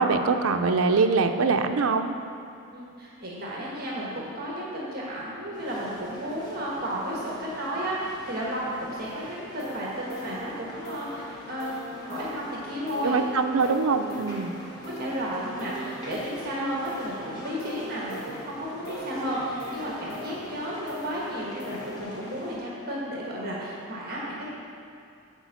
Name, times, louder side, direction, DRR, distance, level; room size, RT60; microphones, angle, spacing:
voice 1, 0.0-2.1 13.0-14.5, right 4 dB, 80° right, 6 dB, 0.5 m, -23 dB
voice 2, 2.7-13.2 14.8-24.5, equal, 45° right, -5 dB, 1.4 m, -33 dB
sound 1, 5.5-22.6, left 1 dB, 20° left, 1.2 m, -44 dB
sound 2, 9.0-22.0, equal, 60° left, 1.7 m, -42 dB
9.9 x 4.4 x 7.1 m, 2.6 s
head